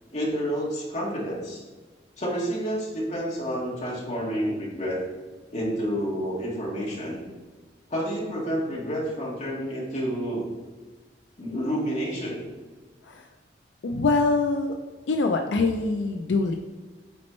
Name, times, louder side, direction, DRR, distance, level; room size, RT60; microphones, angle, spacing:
voice 1, 0.1-1.6 2.2-5.0 5.5-7.2 7.9-10.4 11.4-12.4, equal, 40° left, -5 dB, 1.8 m, -29 dB
voice 2, 13.8-14.7 15.1-16.6, left 3 dB, 80° left, 4 dB, 0.4 m, -24 dB
8.5 x 4.3 x 3.2 m, 1.3 s
head